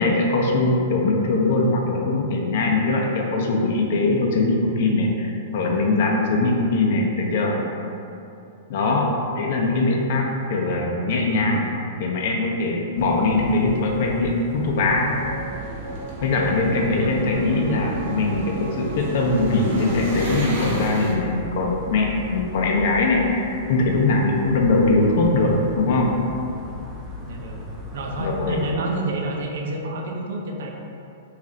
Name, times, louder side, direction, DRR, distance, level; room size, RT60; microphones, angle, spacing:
voice 1, 0.0-7.6 8.7-9.1 9.3-11.6 12.0-15.1 16.2-26.1 28.2-28.6, left 2 dB, 55° left, 0 dB, 0.5 m, -21 dB
voice 2, 8.7-9.2 9.5-9.7 16.8-17.2 27.2-27.6 27.9-30.7, right 2 dB, 70° right, 1 dB, 0.5 m, -30 dB
sound 1, 13.0-28.7, left 1 dB, 10° right, 0.4 m, -37 dB
sound 2, 14.8-21.1, right 2 dB, 50° right, 0.8 m, -32 dB
3.1 x 2.4 x 3.8 m, 2.6 s
hypercardioid pair, 160°, 0 cm